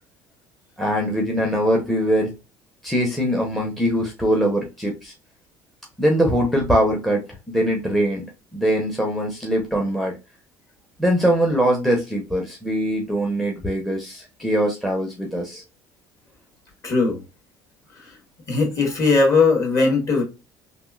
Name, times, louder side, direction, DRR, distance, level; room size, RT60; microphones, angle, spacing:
voice 1, 0.8-2.3 2.8-5.1 6.0-7.2 7.5-8.3 8.5-10.1 11.0-15.6, equal, ahead, 0.7 m, -22 dB
voice 2, 16.8-17.2 18.0-18.1 18.5-20.2, left 4 dB, 35° left, 1.7 m, -19 dB
3.4 x 2.5 x 2.3 m
cardioid pair, 130°, 8 cm